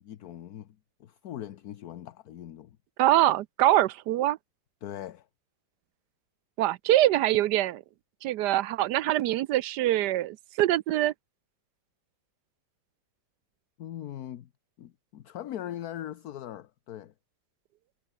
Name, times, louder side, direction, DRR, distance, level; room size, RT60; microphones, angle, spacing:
voice 1, 0.0-2.8 4.8-5.3 13.8-14.5 14.8-17.1, left 11 dB, 60° left, 1.2 m, -40 dB
voice 2, 3.0-4.4 6.6-7.8 8.2-11.1, right 14 dB, 70° right, 1.1 m, -24 dB
omnidirectional pair, 2.0 m